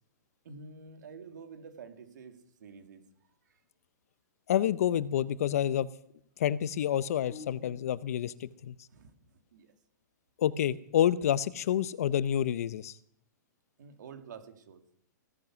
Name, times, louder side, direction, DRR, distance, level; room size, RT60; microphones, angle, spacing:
voice 1, 0.4-3.0 3.5-3.6 8.9-9.7 13.8-14.8, right 5 dB, 70° right, 7 dB, 2.3 m, -49 dB
voice 2, 4.5-5.9 6.4-8.7 10.4-12.9, left 10 dB, 55° left, 18 dB, 0.6 m, -28 dB
sound 1, 7.3-8.3, left 4 dB, 35° left, 3.2 m, -49 dB
16.5 x 10.5 x 6.2 m, 0.69 s
hypercardioid pair, 170°, 10 cm